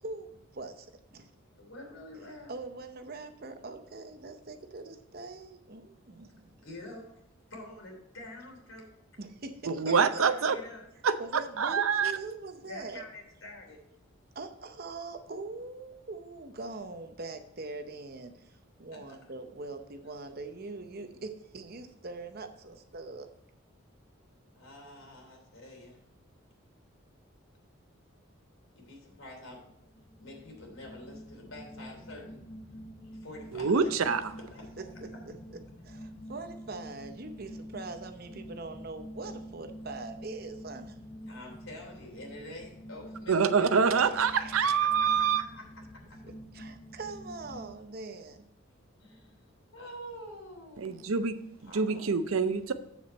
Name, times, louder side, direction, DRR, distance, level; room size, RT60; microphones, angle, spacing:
voice 1, 0.0-1.3 2.5-6.5 9.2-10.2 11.2-13.1 14.3-23.3 34.8-34.9 35.5-35.6 35.8-41.0 44.0-44.9 46.5-48.4, right 3 dB, 45° right, 7 dB, 0.8 m, -42 dB
voice 2, 1.6-2.5 6.5-7.0 7.5-8.9 9.9-10.8 12.7-13.8 18.9-19.2 24.5-26.0 28.7-29.6 30.2-32.4 33.1-33.9 34.5-34.6 41.3-43.9 44.8-45.7 45.9-46.2 49.0-49.4 49.7-51.2 51.6-52.1, left 1 dB, 80° left, 0 dB, 3.1 m, -47 dB
voice 3, 9.7-10.5 11.0-12.1 33.5-34.3 43.3-45.4 50.8-52.7, right 6 dB, 90° right, 12 dB, 0.6 m, -26 dB
sound 1, 29.6-47.8, equal, 20° left, 0.7 m, -47 dB
7.7 x 7.1 x 4.2 m, 0.83 s
head